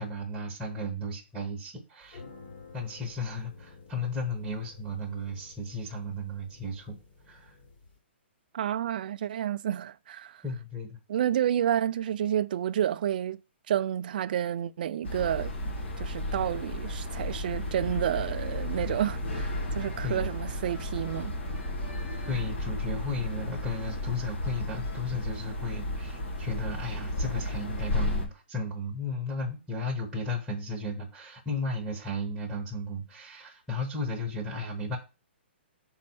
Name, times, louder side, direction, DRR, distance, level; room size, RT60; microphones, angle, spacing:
voice 1, 0.0-2.2 2.7-7.0 7.2-7.6 10.4-11.0 20.0-20.3 22.3-35.0, left 2 dB, ahead, 1.0 m, -34 dB
sound 1, 2.0-7.9, left 4 dB, 45° left, 3.0 m, -51 dB
voice 2, 8.5-10.4 11.1-13.4 13.7-15.5 16.0-21.3, right 10 dB, 45° right, 0.3 m, -30 dB
sound 2, 15.0-28.2, left 1 dB, 75° left, 2.5 m, -33 dB
5.4 x 4.3 x 6.0 m
hypercardioid pair, 170°, 6 cm